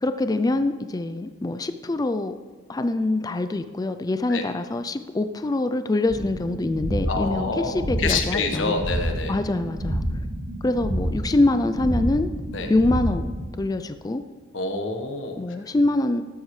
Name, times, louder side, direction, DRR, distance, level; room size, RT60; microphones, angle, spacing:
voice 1, 0.0-2.3 2.7-8.8 9.3-10.2 10.6-12.3 12.7-14.2 15.4-16.2, left 2 dB, 20° left, 9 dB, 0.3 m, -24 dB
sound 1, 6.1-13.5, equal, 70° right, 2.1 m, -29 dB
voice 2, 7.1-9.4 12.5-12.7 14.5-15.4, left 4 dB, 70° left, 4 dB, 1.3 m, -27 dB
13.5 x 12.0 x 3.2 m, 1.4 s
head